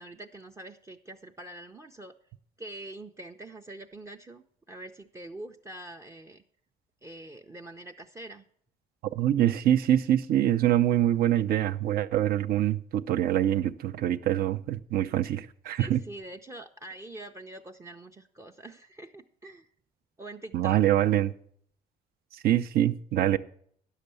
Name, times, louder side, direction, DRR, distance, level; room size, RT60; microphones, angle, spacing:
voice 1, 0.0-2.1 2.6-6.4 7.0-8.5 15.8-19.7 20.2-20.8, right 1 dB, 15° right, 0.5 m, -44 dB
voice 2, 9.2-16.0 20.5-21.3 22.3-23.4, right 12 dB, 65° right, 0.5 m, -25 dB
9.8 x 6.6 x 6.7 m
cardioid pair, 110°, 17 cm